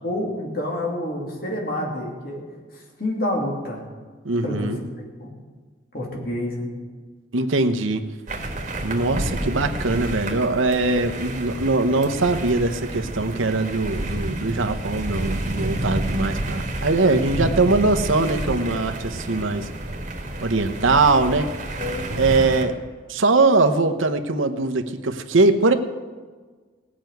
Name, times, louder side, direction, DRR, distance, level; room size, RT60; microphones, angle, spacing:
voice 1, 0.0-2.4 2.7-3.8 4.4-4.8 5.2-5.3 5.9-6.7 21.8-22.2, left 1 dB, 50° left, -1 dB, 2.8 m, -28 dB
voice 2, 4.2-4.8 7.3-8.0 8.8-19.7 20.4-21.5 22.2-22.8 23.1-25.7, right 3 dB, 80° right, 6 dB, 1.0 m, -21 dB
sound 1, 8.3-22.6, right 1 dB, 35° right, 1.6 m, -29 dB
17.5 x 6.2 x 9.2 m, 1.4 s
head